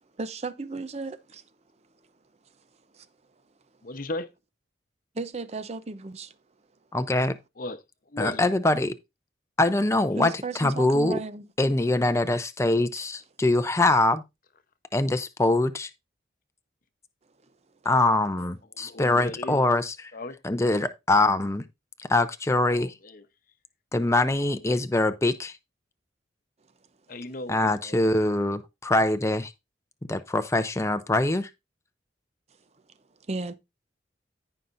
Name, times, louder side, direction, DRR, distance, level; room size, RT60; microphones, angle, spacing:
voice 1, 0.2-1.4 2.9-3.1 5.1-6.4 10.2-11.5 12.9-13.1 33.3-33.5, right 3 dB, 35° right, 0.6 m, -35 dB
voice 2, 3.8-4.3 7.6-8.5 18.7-19.7 20.1-20.4 22.6-23.3 27.1-28.1, left 2 dB, 50° left, 0.9 m, -37 dB
voice 3, 6.9-7.4 8.2-8.9 9.6-10.3 10.6-11.2 11.6-14.2 14.9-15.9 17.8-19.9 20.4-21.6 22.1-22.9 23.9-25.5 27.5-29.5 30.1-31.5, left 2 dB, 15° left, 0.6 m, -23 dB
15.0 x 5.7 x 2.6 m
head